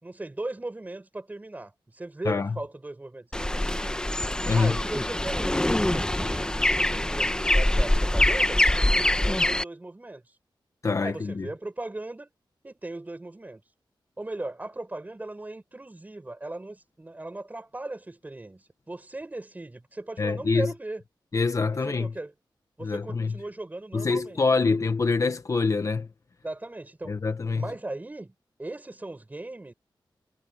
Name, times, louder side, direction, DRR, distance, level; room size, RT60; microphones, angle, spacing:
voice 1, 0.0-4.0 4.5-8.6 8.9-10.4 11.0-12.3 12.6-13.6 14.2-21.0 21.7-22.3 22.8-24.4 24.7-24.8 26.4-27.1 27.5-28.3 28.6-29.7, right 2 dB, 20° right, 4.7 m, -38 dB
sound 1, 3.3-9.6, left 1 dB, 10° left, 0.9 m, -24 dB
voice 2, 4.5-4.8 10.8-11.5 20.2-20.7 21.3-22.1 22.8-23.4 23.9-26.1 27.1-27.7, left 4 dB, 40° left, 1.1 m, -25 dB
wide cardioid pair, 155°, 8 cm